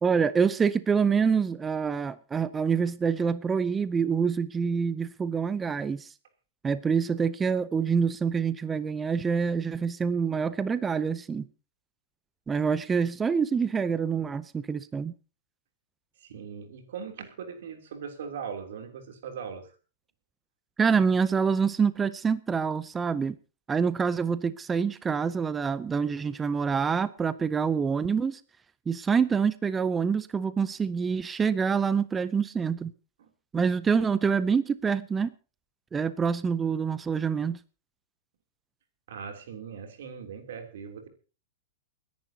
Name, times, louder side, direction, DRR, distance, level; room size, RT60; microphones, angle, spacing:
voice 1, 0.0-6.1 6.6-11.5 12.5-15.1 20.8-23.4 23.7-28.4 28.9-32.9 33.5-35.3 35.9-37.6, right 6 dB, 15° right, 0.6 m, -26 dB
voice 2, 16.2-19.7 33.2-33.3 39.1-41.1, right 6 dB, 75° right, 3.0 m, -40 dB
29.0 x 10.5 x 2.8 m
hypercardioid pair, 140°, 0 cm